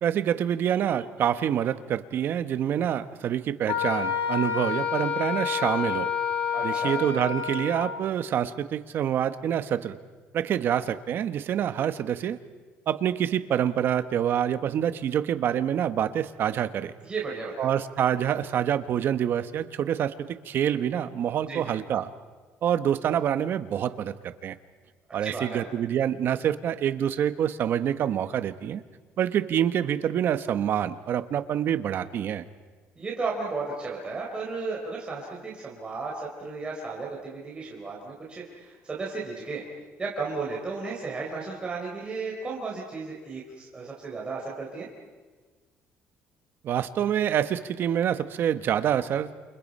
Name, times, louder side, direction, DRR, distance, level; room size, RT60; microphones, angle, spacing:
voice 1, 0.0-6.1 6.6-10.0 10.3-12.4 12.9-16.9 17.6-22.1 22.6-24.5 25.1-28.8 29.2-32.4 46.6-49.3, right 9 dB, 55° right, 11 dB, 1.3 m, -26 dB
Wind instrument woodwind instrument, 3.7-8.0, left 8 dB, 80° left, 5.6 m, -28 dB
voice 2, 6.5-7.0 17.0-17.7 21.5-21.7 25.2-25.6 33.0-39.6 40.0-44.9, right 4 dB, 20° right, -3 dB, 4.4 m, -34 dB
29.0 x 28.5 x 5.6 m, 1.4 s
cardioid pair, 130°, 4 cm